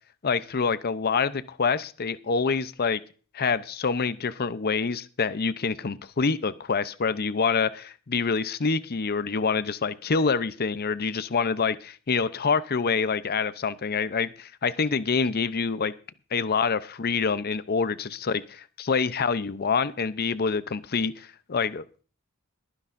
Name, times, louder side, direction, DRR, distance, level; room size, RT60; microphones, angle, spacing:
voice 1, 0.2-3.0 3.3-15.9 16.3-22.0, left 5 dB, 45° left, 14 dB, 0.6 m, -26 dB
22.5 x 9.9 x 2.6 m, 0.39 s
head